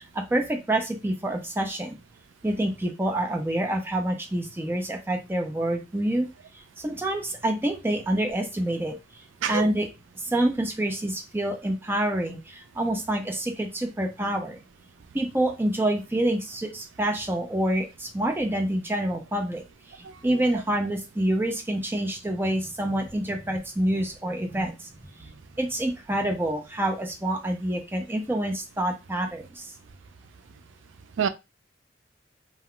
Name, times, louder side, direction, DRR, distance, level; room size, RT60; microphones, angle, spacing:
voice 1, 0.0-2.0 2.4-6.3 6.8-9.0 9.5-9.9 10.2-14.6 15.1-19.6 20.2-24.9 25.6-29.6, right 1 dB, 10° right, 0.5 m, -27 dB
voice 2, 20.0-20.6 31.2-31.3, right 7 dB, 90° right, 0.4 m, -28 dB
2.3 x 2.2 x 3.6 m
head